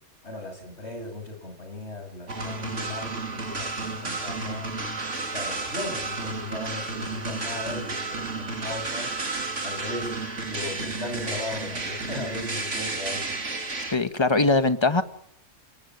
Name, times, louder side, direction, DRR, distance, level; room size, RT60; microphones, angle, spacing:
voice 1, 0.2-4.7 5.3-9.1 9.6-10.2 10.5-13.3, left 2 dB, 60° left, 5 dB, 8.0 m, -37 dB
sound 1, 2.3-13.9, right 3 dB, 75° right, 3.1 m, -32 dB
voice 2, 13.9-15.0, left 3 dB, 20° left, 10 dB, 1.5 m, -21 dB
28.0 x 19.0 x 9.6 m, 0.74 s
omnidirectional pair, 1.3 m